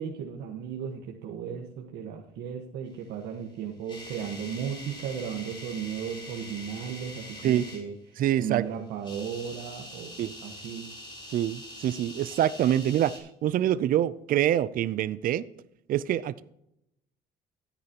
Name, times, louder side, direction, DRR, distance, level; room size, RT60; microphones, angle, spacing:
voice 1, 0.0-10.1 10.4-10.9, right 8 dB, 85° right, 1.4 m, -35 dB
sound 1, 3.4-7.8 8.9-13.2, left 1 dB, 30° left, 3.8 m, -44 dB
voice 2, 8.2-8.6 10.2-10.3 11.3-15.4 15.9-16.4, right 11 dB, 55° right, 0.5 m, -25 dB
14.5 x 9.9 x 2.9 m
cardioid pair, 110°, 17 cm